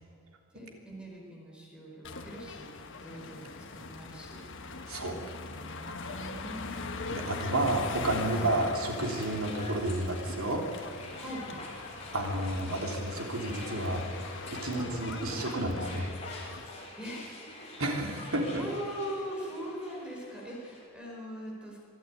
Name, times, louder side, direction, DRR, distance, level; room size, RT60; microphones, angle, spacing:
voice 1, 0.5-4.4 5.4-7.8 8.3-8.5 11.2-11.6 17.0-17.3 17.6-17.8 18.6-21.8, equal, 5° right, -2 dB, 4.5 m, -42 dB
sound 1, 2.0-16.7, left 3 dB, 60° left, 1.4 m, -41 dB
voice 2, 7.1-10.6 12.1-14.0 14.5-16.1 17.8-18.6, right 1 dB, 75° right, 1 dB, 3.3 m, -31 dB
sound 2, 9.0-20.9, left 2 dB, 30° left, 3.8 m, -46 dB
24.0 x 12.0 x 9.4 m, 2.3 s
head